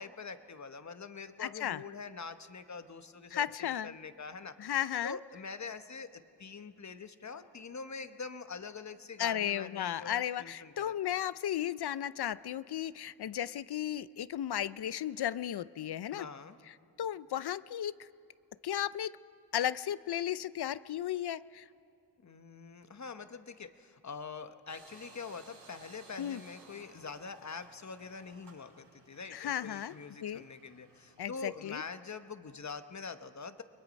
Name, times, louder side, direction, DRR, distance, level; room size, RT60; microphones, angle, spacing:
voice 1, 0.0-4.6 5.0-10.9 16.1-16.6 22.2-33.6, left 4 dB, 40° left, 10 dB, 1.0 m, -44 dB
voice 2, 1.4-1.8 3.3-3.9 4.6-5.2 9.2-16.3 16.7-18.1 18.6-19.2 19.5-21.7 26.2-26.4 29.3-29.9 30.2-30.4 31.2-31.8, left 11 dB, 65° left, 17 dB, 0.5 m, -35 dB
sound 1, 24.7-31.7, right 3 dB, 80° right, 6.6 m, -58 dB
29.5 x 21.5 x 5.2 m, 2.6 s
wide cardioid pair, 95°, 42 cm